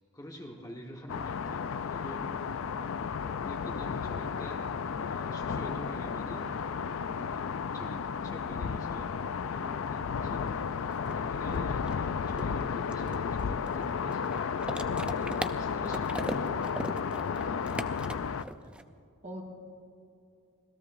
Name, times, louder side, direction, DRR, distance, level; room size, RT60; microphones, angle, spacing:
voice 1, 0.1-3.1 3.4-6.5 7.0-10.5 11.0-14.4 15.1-16.6 17.5-18.0, equal, 15° left, 0 dB, 1.3 m, -46 dB
sound 1, 1.1-18.4, left 6 dB, 65° left, 0.4 m, -33 dB
voice 2, 2.2-2.7 18.7-18.8 19.2-19.4, equal, 35° right, 0 dB, 1.8 m, -46 dB
sound 2, 10.3-10.4 10.6-18.8, right 1 dB, 5° right, 0.4 m, -39 dB
26.0 x 17.5 x 2.6 m, 2.5 s
head